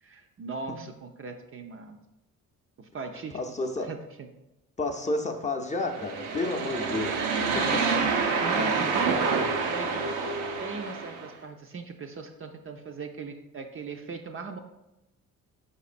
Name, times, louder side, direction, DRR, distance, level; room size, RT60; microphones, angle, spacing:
voice 1, 0.0-2.0 2.8-3.4 3.8-4.3 7.4-7.9 8.4-10.1 10.6-14.6, right 4 dB, 35° right, 4 dB, 0.5 m, -38 dB
voice 2, 3.3-3.9 4.8-7.2 7.5-7.6, left 2 dB, 20° left, 3 dB, 0.6 m, -30 dB
sound 1, 5.9-11.3, right 4 dB, 85° right, 0.6 m, -27 dB
4.8 x 4.2 x 2.5 m, 0.95 s
supercardioid pair, 55°, 36 cm